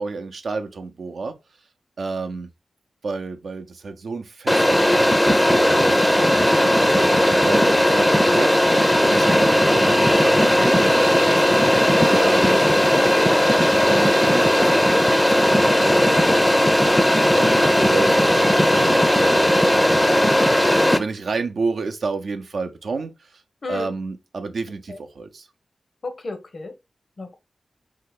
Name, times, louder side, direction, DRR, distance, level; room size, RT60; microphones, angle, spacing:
voice 1, 0.0-1.3 2.0-2.5 3.0-11.7 12.0-12.6 13.8-16.6 17.0-23.4 23.7-25.5, right 4 dB, 75° right, 0.5 m, -31 dB
sound 1, 4.5-21.0, left 1 dB, 10° left, 0.5 m, -17 dB
voice 2, 12.0-12.4 12.9-13.2 23.6-23.9 24.9-25.0 26.0-26.7 27.2-27.4, left 3 dB, 60° left, 0.8 m, -31 dB
2.8 x 2.1 x 3.7 m
cardioid pair, 45°, 0 cm